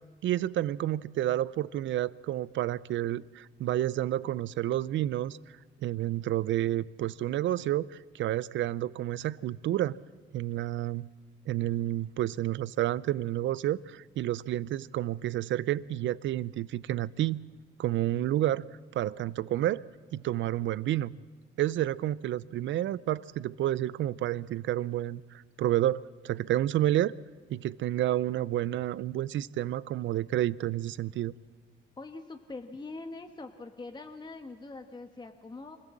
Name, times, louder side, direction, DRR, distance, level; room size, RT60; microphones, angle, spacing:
voice 1, 0.2-5.4 5.8-10.0 10.3-11.1 11.5-17.4 17.8-18.6 18.9-19.8 20.1-21.1 21.6-27.1 27.5-31.3, right 13 dB, 70° right, 0.6 m, -30 dB
voice 2, 32.0-35.8, left 3 dB, 20° left, 1.2 m, -43 dB
25.0 x 15.5 x 7.5 m
cardioid pair, 90°, 20 cm